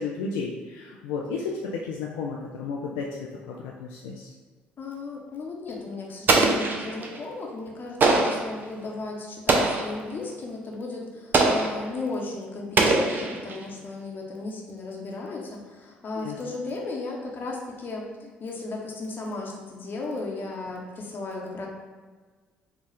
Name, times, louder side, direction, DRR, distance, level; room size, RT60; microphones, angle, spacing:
voice 1, 0.0-4.3 16.2-16.4, left 4 dB, 70° left, -2 dB, 0.4 m, -33 dB
voice 2, 4.8-21.7, left 3 dB, 40° left, -1 dB, 0.9 m, -35 dB
Explosion, 6.3-7.2 8.0-8.5 9.5-10.0 11.3-11.9 12.8-13.6, right 3 dB, 40° right, 0.6 m, -22 dB
4.7 x 2.3 x 3.4 m, 1.4 s
figure-of-eight pair, 50°, 5 cm